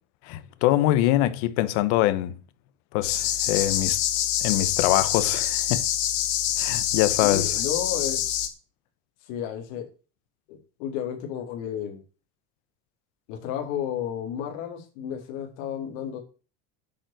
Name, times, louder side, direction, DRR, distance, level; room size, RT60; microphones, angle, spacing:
voice 1, 0.2-2.4 2.9-4.0 4.4-5.8 6.6-7.5, left 15 dB, 75° left, 1.3 m, -24 dB
sound 1, 3.0-8.5, left 11 dB, 55° left, 2.3 m, -26 dB
voice 2, 7.2-8.2 9.2-9.9 10.5-12.0 13.3-16.2, left 9 dB, 90° left, 4.2 m, -32 dB
10.0 x 7.5 x 7.8 m
cardioid pair, 180°, 34 cm